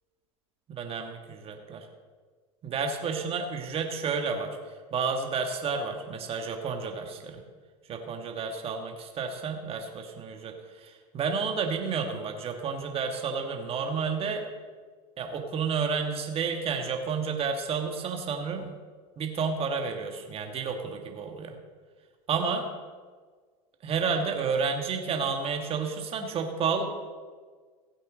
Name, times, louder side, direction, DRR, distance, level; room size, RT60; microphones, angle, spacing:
voice 1, 0.7-1.9 2.6-7.4 7.9-14.5 15.2-18.7 19.2-21.6 22.3-22.7 23.8-26.9, right 5 dB, 35° right, 4 dB, 1.6 m, -31 dB
16.0 x 8.1 x 3.8 m, 1.5 s
hypercardioid pair, 105°, 18 cm